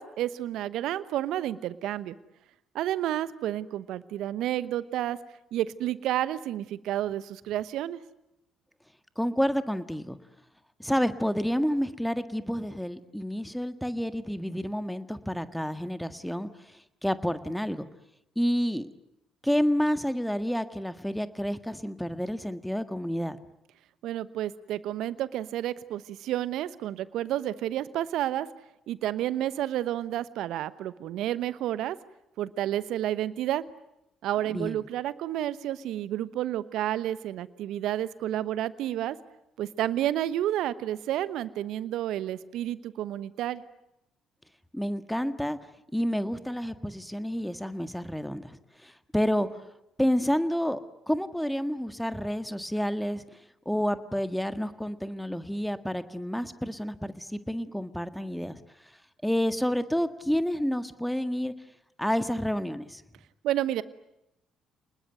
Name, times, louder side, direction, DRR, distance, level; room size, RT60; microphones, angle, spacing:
voice 1, 0.0-2.2 2.7-5.2 5.5-8.0 24.0-28.5 28.9-32.0 32.4-33.6 34.2-39.2 39.6-43.6 63.4-63.8, right 12 dB, 65° right, 17 dB, 1.0 m, -30 dB
voice 2, 9.2-10.2 10.8-17.9 18.3-18.9 19.4-23.4 34.5-34.8 44.7-45.6 45.9-49.5 50.0-50.8 51.1-53.2 53.6-58.6 59.2-61.5 62.0-63.0, equal, 5° left, 11 dB, 1.7 m, -29 dB
29.5 x 20.5 x 9.3 m, 0.86 s
hypercardioid pair, 50°, 0 cm